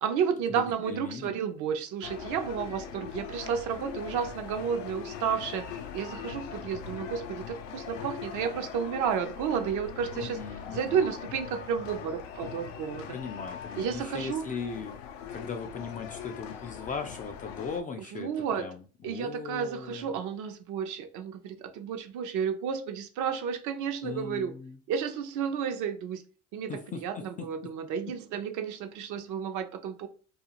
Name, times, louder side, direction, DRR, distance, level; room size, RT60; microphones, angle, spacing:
voice 1, 0.0-13.1 13.8-14.5 18.1-18.7 19.0-24.6 24.9-26.2 26.5-30.1, right 7 dB, 55° right, 0.6 m, -32 dB
voice 2, 0.9-1.3 10.1-11.0 13.1-15.0 15.3-18.3 18.6-20.1 24.0-24.8 26.7-27.7, left 5 dB, 25° left, 0.3 m, -38 dB
sound 1, 2.0-17.8, left 7 dB, 80° left, 0.5 m, -41 dB
2.4 x 2.4 x 2.8 m
supercardioid pair, 95°, 36 cm